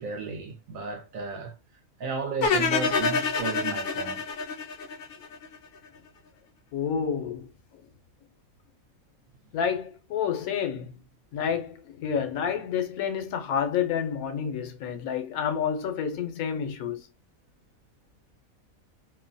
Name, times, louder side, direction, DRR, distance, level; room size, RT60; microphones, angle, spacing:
voice 1, 0.0-1.5 2.0-4.2, right 4 dB, 70° right, 1.1 m, -34 dB
sound 1, 2.4-5.6, left 4 dB, 65° left, 0.9 m, -27 dB
voice 2, 6.7-7.5 9.5-10.9 11.3-17.0, left 7 dB, 90° left, 1.1 m, -29 dB
2.8 x 2.2 x 2.5 m
omnidirectional pair, 1.5 m